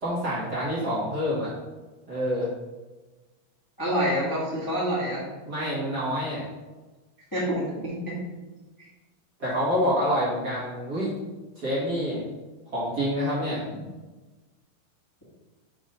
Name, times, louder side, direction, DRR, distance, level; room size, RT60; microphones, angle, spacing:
voice 1, 0.0-1.5 2.1-2.5 5.5-6.5 9.4-11.2 11.6-12.2 12.7-13.6, equal, 35° right, -8 dB, 1.8 m, -27 dB
voice 2, 3.8-5.2 7.3-8.1, equal, 15° left, -8 dB, 0.7 m, -27 dB
5.9 x 3.6 x 5.4 m, 1.2 s
omnidirectional pair, 3.9 m